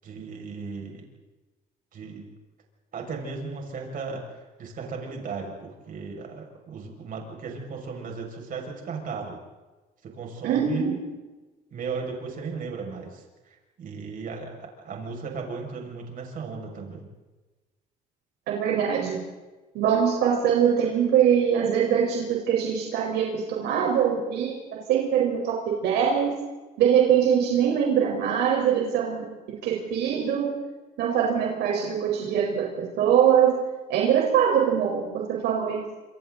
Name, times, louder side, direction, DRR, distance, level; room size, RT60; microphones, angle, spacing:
voice 1, 0.0-1.0 1.9-2.2 2.9-4.2 4.6-9.4 10.0-11.1 11.7-14.5 14.8-17.1, right 5 dB, 55° right, 0 dB, 6.5 m, -36 dB
voice 2, 10.4-11.0 18.5-19.2 19.7-26.3 26.8-29.3 29.6-30.6 31.0-33.6 33.9-35.8, right 8 dB, 80° right, -2 dB, 4.9 m, -23 dB
27.5 x 27.0 x 4.1 m, 1.2 s
cardioid pair, 110°, 17 cm